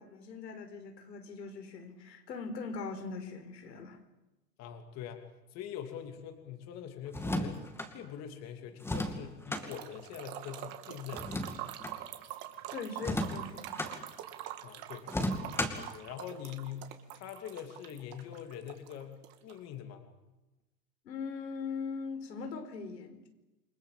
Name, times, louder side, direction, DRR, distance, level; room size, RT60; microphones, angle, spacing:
voice 1, 0.0-4.0 12.7-14.1 21.1-23.3, left 4 dB, 90° left, 5.1 m, -41 dB
voice 2, 4.6-5.2 5.5-7.7 7.9-11.6 14.6-15.1 15.6-20.0, left 9 dB, 30° left, 2.8 m, -44 dB
sound 1, 7.1-7.9 8.8-9.7 11.1-12.0 13.0-13.9 15.1-15.9, left 1 dB, 5° left, 2.4 m, -34 dB
sound 2, 9.6-19.6, right 13 dB, 40° right, 2.6 m, -45 dB
28.5 x 21.5 x 7.6 m
hypercardioid pair, 145°, 48 cm